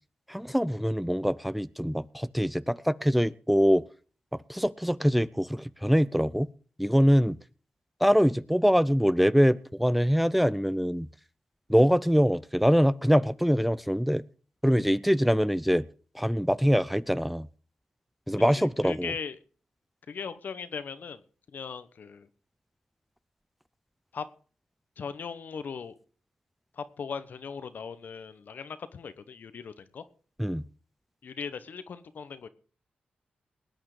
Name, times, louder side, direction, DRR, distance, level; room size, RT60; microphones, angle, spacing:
voice 1, 0.3-3.8 4.5-6.5 6.8-7.4 8.0-11.1 11.7-14.2 14.6-15.8 16.1-17.5 18.3-19.1 30.4-30.6, equal, ahead, 0.6 m, -24 dB
voice 2, 18.6-19.4 20.1-21.2 21.5-22.3 24.1-24.3 25.0-26.0 26.8-30.0 31.2-32.5, left 6 dB, 70° left, 1.2 m, -38 dB
19.5 x 8.9 x 5.0 m
supercardioid pair, 45°, 3 cm